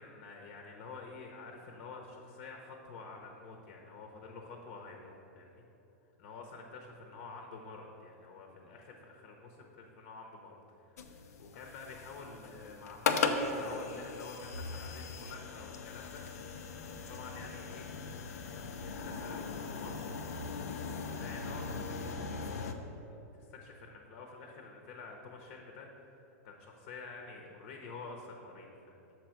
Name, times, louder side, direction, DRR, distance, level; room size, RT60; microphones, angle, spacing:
voice 1, 0.0-5.6 6.2-16.7 16.9-17.9 18.8-20.1 21.1-22.5 22.7-25.9 26.4-29.1, left 4 dB, 55° left, 2 dB, 0.9 m, -49 dB
sound 1, 11.0-22.7, left 4 dB, 85° left, 0.6 m, -38 dB
6.7 x 4.6 x 6.5 m, 3.0 s
supercardioid pair, 140°, 8 cm